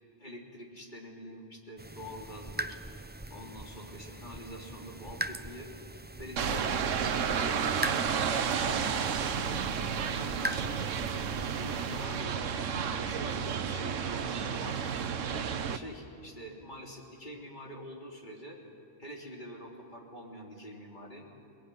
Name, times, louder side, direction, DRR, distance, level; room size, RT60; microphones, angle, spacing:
voice 1, 0.2-2.8 3.3-5.7 6.2-10.8 11.3-14.8 15.2-18.6 19.0-21.2, equal, 40° left, -1 dB, 3.5 m, -46 dB
sound 1, 1.8-12.1, right 2 dB, 15° right, 0.3 m, -41 dB
sound 2, 6.4-15.8, right 7 dB, 80° right, 1.3 m, -31 dB
22.0 x 21.0 x 9.9 m, 2.7 s
omnidirectional pair, 1.3 m